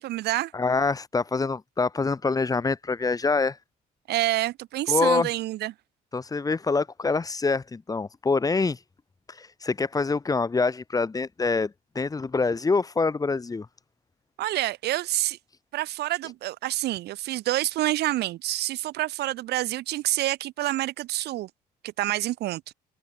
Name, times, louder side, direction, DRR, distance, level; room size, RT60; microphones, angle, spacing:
voice 1, 0.0-0.5 4.1-5.7 14.4-15.4 15.7-21.5 21.8-22.7, right 16 dB, 75° right, 3.4 m, -27 dB
voice 2, 0.5-3.6 4.9-5.3 6.1-8.8 9.3-13.7, left 4 dB, 20° left, 2.7 m, -25 dB
cardioid pair, 110°, 17 cm